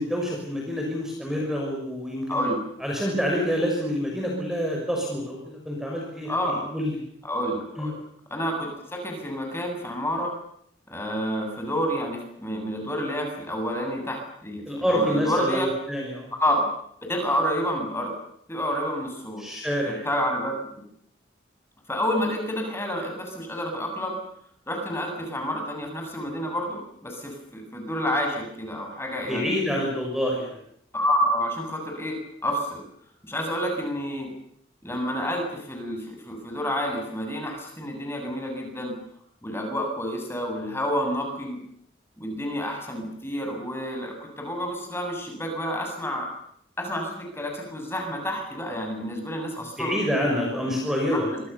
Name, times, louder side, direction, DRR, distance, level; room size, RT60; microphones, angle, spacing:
voice 1, 0.0-2.4 2.8-7.0 7.8-7.9 14.7-16.3 19.4-20.1 29.3-30.6 49.8-51.3, equal, ahead, -1 dB, 5.9 m, -27 dB
voice 2, 6.3-6.6 7.2-7.9 8.3-10.3 10.9-15.7 16.4-16.7 17.0-18.1 18.5-19.5 19.8-20.5 21.9-24.2 24.7-29.5 30.9-32.1 32.4-32.8 33.2-34.3 34.8-39.0 39.4-41.6 42.2-46.3 46.8-49.9 50.5-50.8 51.1-51.4, equal, 15° left, 3 dB, 7.6 m, -29 dB
27.0 x 25.0 x 7.1 m, 0.69 s
head